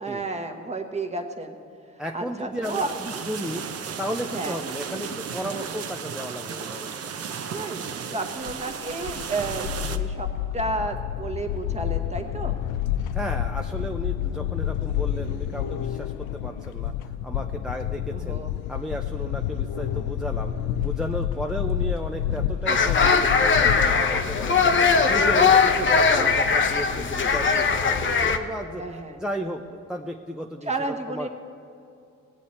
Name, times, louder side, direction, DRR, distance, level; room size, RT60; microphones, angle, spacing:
voice 1, 0.0-1.6 2.1-3.2 4.3-4.6 7.5-10.3 10.5-12.5 18.1-18.5 25.1-25.5 28.8-29.2 30.7-31.3, right 2 dB, 20° right, 5 dB, 1.1 m, -32 dB
voice 2, 2.0-3.7 4.0-7.1 13.1-18.4 18.7-20.5 20.8-30.7 31.1-31.3, equal, ahead, 3 dB, 0.5 m, -34 dB
sound 1, 2.6-10.0, right 7 dB, 55° right, 0.7 m, -34 dB
sound 2, 8.5-24.5, left 10 dB, 85° left, 0.5 m, -29 dB
sound 3, 22.7-28.4, left 5 dB, 40° left, 0.8 m, -20 dB
18.5 x 8.3 x 4.3 m, 2.6 s
cardioid pair, 90°, 30 cm